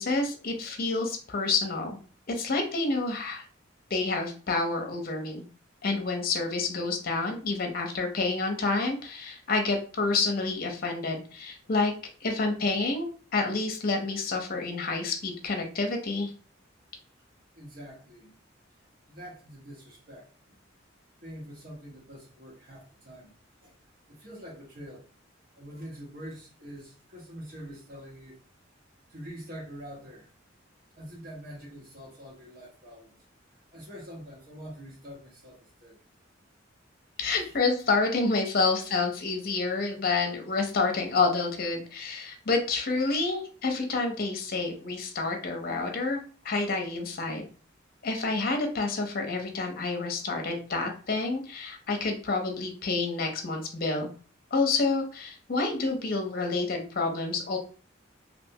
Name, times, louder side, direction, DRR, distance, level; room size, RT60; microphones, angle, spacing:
voice 1, 0.0-2.0 2.3-3.4 3.9-5.4 5.8-11.9 12.2-16.3 37.2-47.5 48.0-54.1 54.5-57.6, left 3 dB, 50° left, 0.7 m, -28 dB
voice 2, 17.5-18.3 19.1-20.6 21.2-23.3 23.6-23.7 24.1-25.0 25.6-28.4 29.1-30.3 31.0-33.2 33.7-36.0 37.2-37.6, equal, 50° right, 1.3 m, -45 dB
3.3 x 2.6 x 2.7 m
head